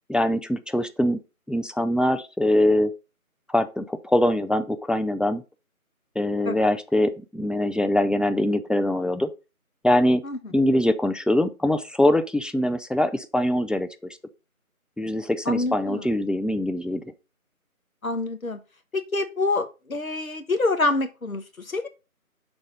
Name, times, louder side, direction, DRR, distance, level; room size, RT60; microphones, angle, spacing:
voice 1, 0.1-1.2 1.5-2.9 3.5-5.4 6.2-9.3 9.8-10.2 10.5-13.9 15.0-17.0, left 1 dB, ahead, 0.3 m, -23 dB
voice 2, 15.5-16.1 18.0-18.6 18.9-21.9, left 2 dB, 70° left, 1.2 m, -26 dB
6.3 x 3.9 x 4.9 m
figure-of-eight pair, 165°, 44 cm